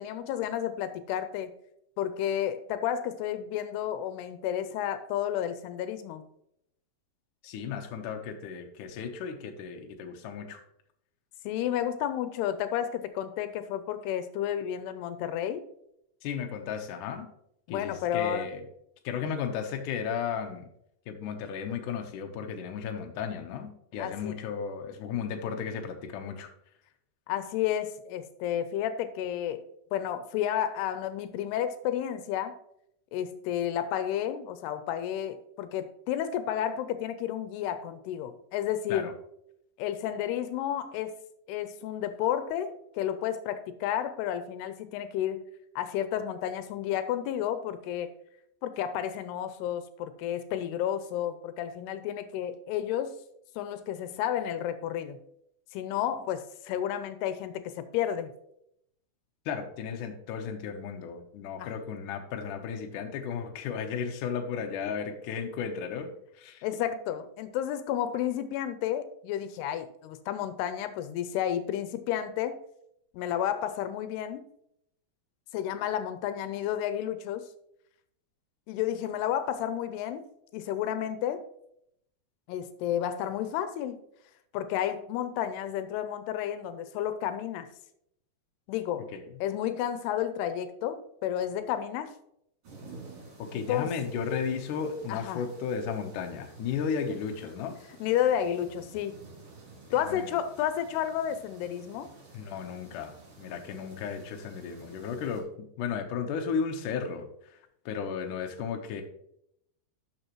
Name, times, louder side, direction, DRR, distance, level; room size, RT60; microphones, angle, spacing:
voice 1, 0.0-1.5 2.0-6.3 11.5-15.6 17.7-18.5 24.0-24.4 27.3-29.6 29.9-32.6 33.1-39.1 39.8-41.2 41.5-45.5 45.8-48.1 48.6-53.1 53.6-55.2 55.7-58.3 61.6-61.7 66.6-72.6 73.1-74.4 75.5-77.5 78.7-80.2 80.5-81.5 82.5-84.0 84.5-87.7 88.7-89.1 89.4-92.1 93.5-94.0 95.1-95.4 98.0-99.2 99.9-102.1, left 10 dB, 85° left, 11 dB, 2.7 m, -31 dB
voice 2, 7.4-10.6 16.2-17.3 17.7-18.6 19.0-20.7 21.1-26.5 38.9-39.1 59.5-66.6 89.1-89.2 93.4-97.8 99.9-100.3 102.3-103.1 103.4-105.5 105.8-107.3 107.9-109.0, left 6 dB, 70° left, 3 dB, 2.1 m, -34 dB
sound 1, 92.6-105.4, right 3 dB, 40° right, 3.4 m, -51 dB
12.0 x 6.0 x 3.0 m, 0.74 s
omnidirectional pair, 4.7 m